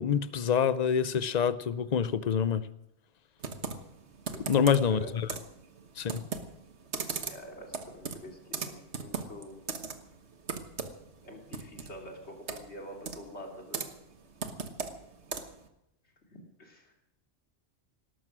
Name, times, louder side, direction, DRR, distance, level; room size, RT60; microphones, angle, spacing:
voice 1, 0.0-2.7 4.5-5.3 6.0-6.2, left 7 dB, 45° left, 0.7 m, -26 dB
Computer keyboard, 3.4-15.7, right 5 dB, 90° right, 1.6 m, -39 dB
voice 2, 4.3-5.1 7.2-9.5 11.2-13.8 16.3-16.9, equal, 85° left, 3.2 m, -46 dB
18.5 x 13.0 x 6.1 m
omnidirectional pair, 1.1 m